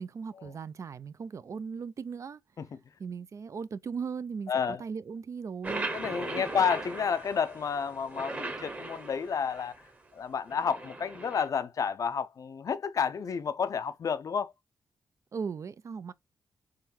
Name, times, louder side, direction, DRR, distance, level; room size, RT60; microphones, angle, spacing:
voice 1, 0.0-2.4 3.0-4.5 4.8-5.9 15.3-16.1, right 5 dB, 50° right, 0.4 m, -37 dB
voice 2, 4.5-4.8 5.9-9.8 10.1-14.5, left 6 dB, 55° left, 0.5 m, -31 dB
sound 1, 5.6-9.9 10.5-11.5, right 2 dB, 25° right, 1.0 m, -39 dB
3.8 x 3.0 x 4.3 m
cardioid pair, 95°, 7 cm